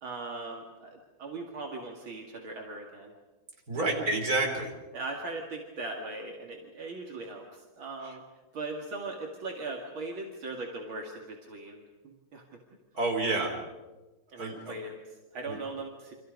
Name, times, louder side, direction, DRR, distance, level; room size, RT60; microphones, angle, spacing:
voice 1, 0.0-3.1 4.0-4.1 4.9-8.2 8.5-12.4 14.3-16.1, right 3 dB, 70° right, 0 dB, 3.0 m, -39 dB
voice 2, 3.7-4.7 12.9-13.5 14.4-14.7 15.5-15.6, right 2 dB, 45° right, 1 dB, 4.6 m, -29 dB
29.5 x 26.0 x 5.3 m, 1.1 s
omnidirectional pair, 2.3 m